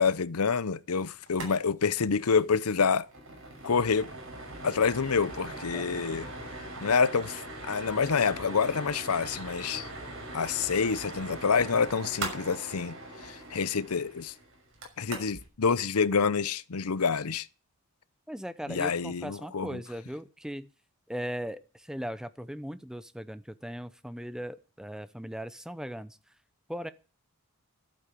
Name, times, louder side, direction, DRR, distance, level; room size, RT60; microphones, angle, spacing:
voice 1, 0.0-3.1 3.6-4.1 4.6-6.3 6.8-9.9 10.3-13.0 13.2-14.3 15.0-17.5 18.7-19.8, left 5 dB, 85° left, 0.7 m, -27 dB
sound 1, 1.3-1.5 1.8-1.9 2.2-2.4 2.8-15.5, right 2 dB, 60° right, 6.1 m, -41 dB
voice 2, 18.3-20.7 21.1-26.2 26.7-26.9, equal, 5° right, 0.7 m, -38 dB
12.0 x 8.9 x 8.4 m
head